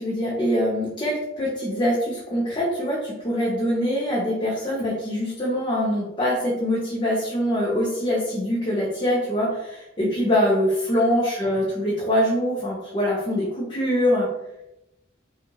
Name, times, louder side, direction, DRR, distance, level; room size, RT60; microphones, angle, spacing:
voice 1, 0.0-14.3, equal, 25° left, -5 dB, 0.9 m, -24 dB
5.7 x 2.5 x 2.9 m, 0.88 s
head